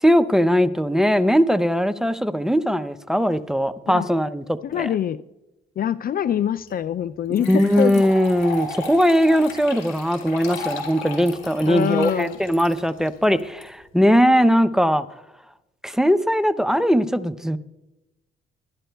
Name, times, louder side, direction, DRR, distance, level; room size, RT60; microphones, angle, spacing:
voice 1, 0.0-4.4 4.7-4.9 7.5-15.1 15.8-17.6, equal, 5° right, 13 dB, 0.5 m, -19 dB
voice 2, 4.6-5.2 5.8-8.0 11.7-12.4, left 9 dB, 50° left, 15 dB, 0.4 m, -24 dB
sound 1, 6.7-6.8 7.3-13.6, left 3 dB, 80° left, 4.3 m, -35 dB
26.5 x 12.0 x 2.3 m, 0.96 s
cardioid pair, 90°, 20 cm